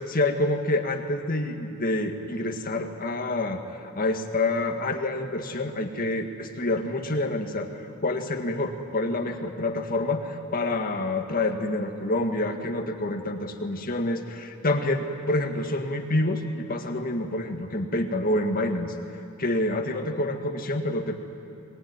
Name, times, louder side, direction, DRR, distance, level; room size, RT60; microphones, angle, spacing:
voice 1, 0.1-7.7 8.0-18.9 19.4-21.2, left 2 dB, 45° left, 4 dB, 1.9 m, -27 dB
23.0 x 20.0 x 9.7 m, 2.6 s
head